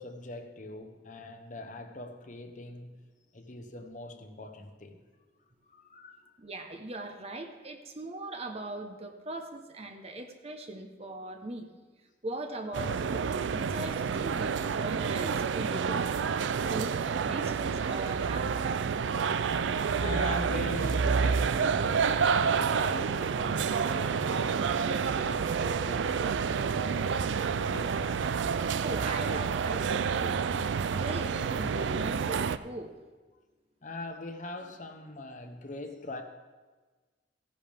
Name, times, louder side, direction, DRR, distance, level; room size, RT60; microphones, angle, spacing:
voice 1, 0.0-3.0 3.3-5.0 5.7-6.3 15.0-15.1 19.9-27.2 27.6-28.3 33.8-36.2, left 2 dB, 45° left, 0.9 m, -42 dB
voice 2, 6.4-11.7 12.2-16.1 16.7-16.9 17.2-18.8 28.8-30.5 30.8-32.9, right 2 dB, 35° right, 0.9 m, -40 dB
sound 1, 12.7-32.6, right 6 dB, 85° right, 0.4 m, -29 dB
15.5 x 10.5 x 3.5 m
head